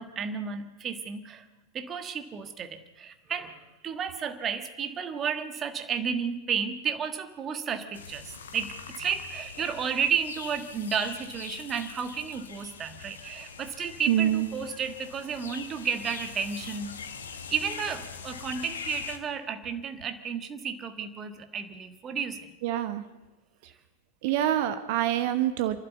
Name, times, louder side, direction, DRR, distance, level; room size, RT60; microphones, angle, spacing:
voice 1, 0.0-1.5 1.7-16.9 17.5-22.5, right 6 dB, 25° right, 9 dB, 1.5 m, -32 dB
sound 1, 7.9-19.2, left 6 dB, 65° left, 1.4 m, -42 dB
voice 2, 14.1-14.5 22.6-23.0 24.2-25.8, right 12 dB, 50° right, 11 dB, 1.0 m, -26 dB
27.0 x 12.0 x 8.2 m, 1.1 s
figure-of-eight pair, 90°, 0 cm